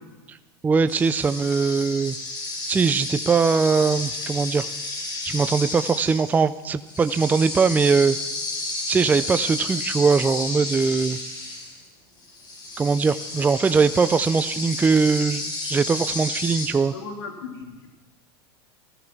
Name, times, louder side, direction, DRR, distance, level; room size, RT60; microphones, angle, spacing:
voice 1, 0.6-2.2 2.7-4.7 5.2-8.2 8.9-11.2 12.8-16.9, right 5 dB, 15° right, 12 dB, 0.4 m, -21 dB
sound 1, 0.9-11.9 12.2-16.7, left 2 dB, 35° left, 5.5 m, -32 dB
voice 2, 16.9-17.9, left 4 dB, 85° left, 2 dB, 3.3 m, -36 dB
15.5 x 11.0 x 6.1 m, 1.2 s
hypercardioid pair, 110°, 13 cm